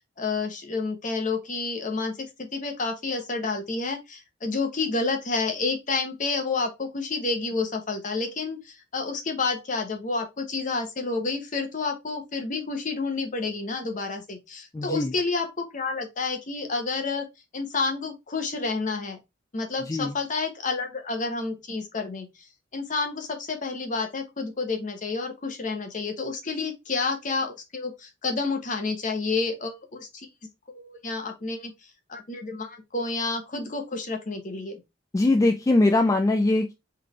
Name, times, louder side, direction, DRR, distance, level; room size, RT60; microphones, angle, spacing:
voice 1, 0.2-17.3 17.5-19.2 19.5-30.3 30.7-31.7 32.1-34.8, left 3 dB, 40° left, 0.9 m, -30 dB
voice 2, 14.7-15.1 19.9-20.1 35.1-36.7, left 2 dB, 15° left, 0.3 m, -21 dB
3.9 x 3.3 x 3.1 m
head